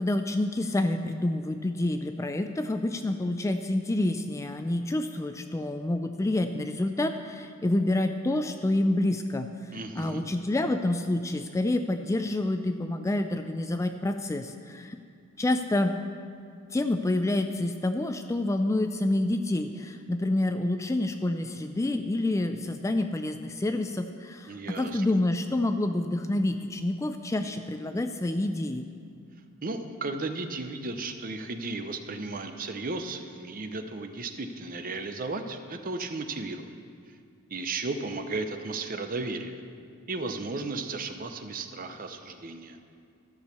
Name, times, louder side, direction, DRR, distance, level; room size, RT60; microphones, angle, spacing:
voice 1, 0.0-15.0 15.4-15.9 16.7-28.8, left 1 dB, 15° left, 8 dB, 0.3 m, -28 dB
voice 2, 9.7-10.2 24.5-25.0 29.6-36.7 37.5-39.6 40.1-42.8, right 3 dB, 40° right, 7 dB, 0.7 m, -34 dB
13.0 x 6.3 x 6.8 m, 2.3 s
head